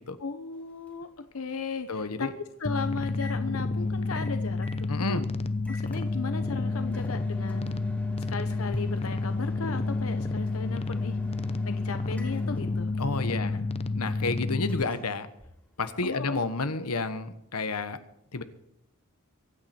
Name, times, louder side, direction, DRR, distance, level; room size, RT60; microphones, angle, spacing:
voice 1, 0.2-2.3 2.6-5.3 5.7-7.9 8.3-11.2 11.6-12.9 13.3-13.6 16.0-16.4 16.8-16.9, left 4 dB, 65° left, 9 dB, 0.9 m, -36 dB
Microwave oven, 0.5-16.2, equal, 5° left, 2.7 m, -51 dB
voice 2, 1.9-2.3 4.9-5.2 13.0-13.6 13.9-15.3 15.8-18.0 18.3-18.4, left 3 dB, 90° left, 11 dB, 1.2 m, -30 dB
sound 1, 2.6-14.8, left 3 dB, 30° left, 0.7 m, -30 dB
24.0 x 9.3 x 4.4 m, 0.78 s
head